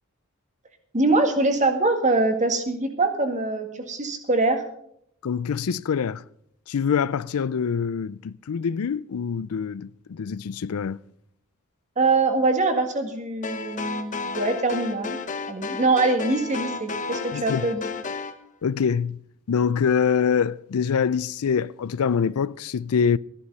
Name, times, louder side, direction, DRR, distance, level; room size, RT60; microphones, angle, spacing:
voice 1, 0.9-4.6 12.0-15.2 15.5-17.8, right 3 dB, 35° right, 1.9 m, -23 dB
voice 2, 5.2-6.2 6.7-11.0 17.3-17.7 18.6-19.2 19.5-23.2, left 6 dB, 85° left, 0.4 m, -25 dB
sound 1, 13.4-18.4, left 4 dB, 35° left, 1.0 m, -32 dB
14.0 x 11.5 x 5.5 m
head